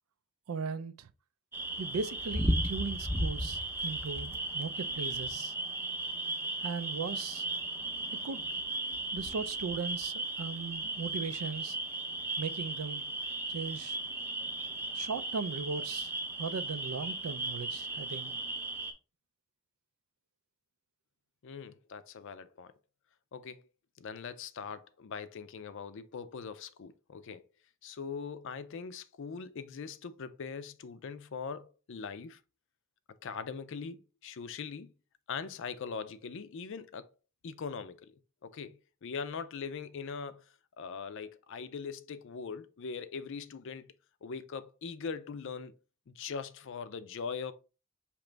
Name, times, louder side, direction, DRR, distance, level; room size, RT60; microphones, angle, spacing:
voice 1, 0.5-1.1 1.8-5.5 6.6-7.5 8.2-8.4 9.1-11.8 12.4-13.0 13.5-14.0 14.9-16.1 16.4-18.3, right 4 dB, 90° right, 0.4 m, -38 dB
sound 1, 1.5-18.9, right 2 dB, 10° right, 0.7 m, -36 dB
voice 2, 21.4-22.7 23.3-23.6 24.0-27.4 27.8-32.4 33.2-34.9 35.3-37.1 37.4-40.5 40.8-43.9 44.2-45.7 46.1-47.5, left 5 dB, 60° left, 0.4 m, -41 dB
5.0 x 2.9 x 3.3 m
head